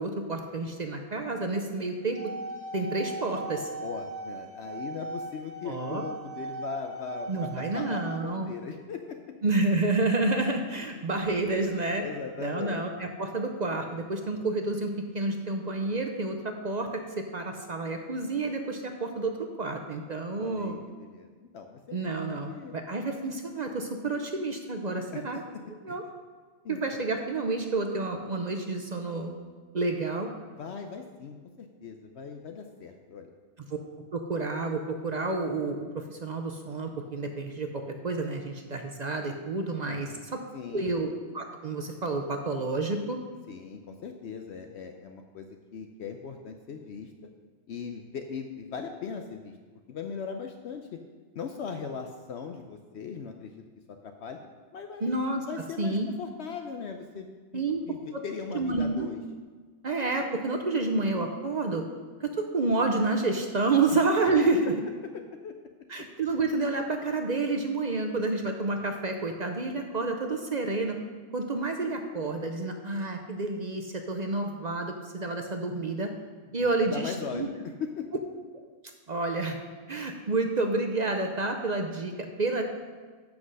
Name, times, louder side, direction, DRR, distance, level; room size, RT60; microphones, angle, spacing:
voice 1, 0.0-2.2 2.7-3.7 5.6-6.0 7.3-8.5 9.4-12.0 12.4-20.8 21.9-25.4 25.8-26.0 26.7-29.4 29.7-30.3 33.7-33.8 34.1-37.7 38.0-40.4 40.7-43.2 55.0-55.4 55.8-56.1 57.5-57.8 58.5-59.1 59.8-61.8 62.2-64.7 65.9-71.0 71.3-76.1 76.5-77.5 79.1-79.6 79.9-82.6, right 3 dB, 45° right, 4 dB, 0.6 m, -29 dB
sound 1, 2.0-8.2, right 2 dB, 65° right, 1.1 m, -39 dB
voice 2, 3.8-9.2 12.0-12.8 20.4-22.7 25.1-25.4 25.9-26.0 26.6-27.0 30.6-33.3 39.8-40.3 40.5-40.9 43.5-47.3 47.7-49.6 49.9-51.0 51.3-54.4 54.7-55.2 55.4-59.2 65.1-65.6 66.0-66.1 76.9-78.1, left 6 dB, 65° left, 5 dB, 0.8 m, -39 dB
7.6 x 6.0 x 6.3 m, 1.5 s
omnidirectional pair, 1.3 m